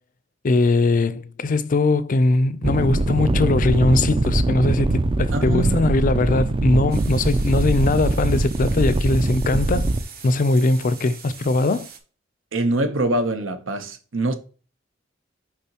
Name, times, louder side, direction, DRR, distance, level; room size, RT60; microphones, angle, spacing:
voice 1, 0.4-9.9 10.2-11.9, left 2 dB, 45° left, 0.4 m, -20 dB
sound 1, 2.6-10.0, right 2 dB, 25° right, 0.3 m, -22 dB
voice 2, 5.3-5.9 12.5-14.3, right 2 dB, 85° right, 0.9 m, -24 dB
sound 2, 6.9-12.0, right 6 dB, 50° right, 1.1 m, -42 dB
6.8 x 4.9 x 2.9 m
head